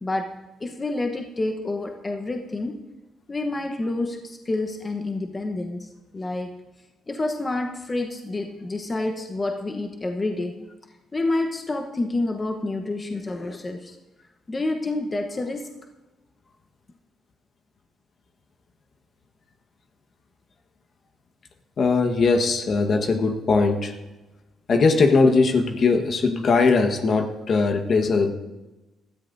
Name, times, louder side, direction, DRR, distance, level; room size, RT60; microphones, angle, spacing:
voice 1, 0.0-2.8 3.3-6.5 7.1-10.5 11.1-14.0 14.5-15.7, left 2 dB, 25° left, 3 dB, 1.1 m, -28 dB
voice 2, 21.8-23.9 24.7-28.3, left 4 dB, 50° left, 5 dB, 1.4 m, -20 dB
18.5 x 13.5 x 2.7 m, 1.1 s
cardioid pair, 90°, 0 cm